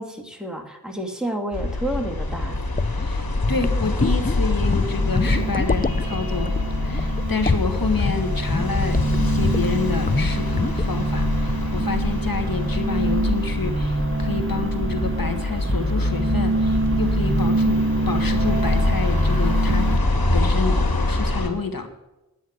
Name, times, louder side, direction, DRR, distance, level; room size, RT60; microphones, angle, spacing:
voice 1, 0.0-2.6, right 1 dB, ahead, 3 dB, 2.4 m, -30 dB
sound 1, 1.5-21.5, left 2 dB, 90° left, 2.3 m, -25 dB
sound 2, 2.3-9.8 10.1-10.3 10.6-11.0, left 3 dB, 25° left, 0.5 m, -25 dB
voice 2, 3.0-6.6 6.8-19.9 20.3-21.9, left 4 dB, 75° left, 7 dB, 1.6 m, -29 dB
sound 3, 3.5-20.0, right 2 dB, 35° right, 0.8 m, -26 dB
10.5 x 9.3 x 8.0 m, 1.0 s
wide cardioid pair, 55°, 35 cm